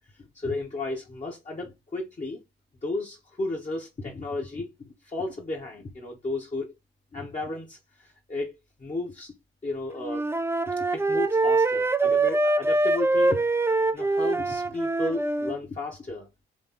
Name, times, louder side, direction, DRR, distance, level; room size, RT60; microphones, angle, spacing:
voice 1, 0.1-2.4 2.8-6.7 7.1-8.5 8.8-9.3 9.6-10.3 10.7-13.4 13.9-16.3, left 2 dB, 25° left, 1.2 m, -34 dB
Wind instrument woodwind instrument, 10.0-15.6, right 2 dB, 10° right, 0.4 m, -24 dB
3.5 x 3.1 x 3.7 m
hypercardioid pair, 45°, 29 cm